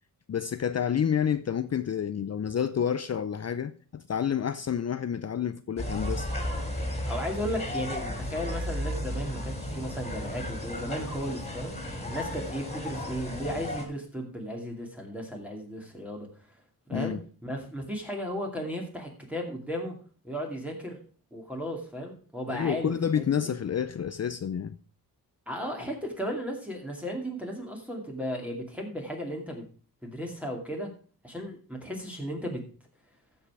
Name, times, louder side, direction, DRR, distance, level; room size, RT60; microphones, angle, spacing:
voice 1, 0.3-6.3 16.9-17.2 22.5-24.8, left 8 dB, 45° left, 0.5 m, -29 dB
sound 1, 5.8-13.8, left 1 dB, 15° left, 3.1 m, -34 dB
voice 2, 7.1-11.7 12.1-16.3 16.9-20.0 20.2-21.0 21.3-23.5 25.5-29.7 30.0-30.9 31.2-32.6, equal, 5° right, 2.4 m, -35 dB
14.0 x 5.5 x 4.8 m
wide cardioid pair, 115°, 38 cm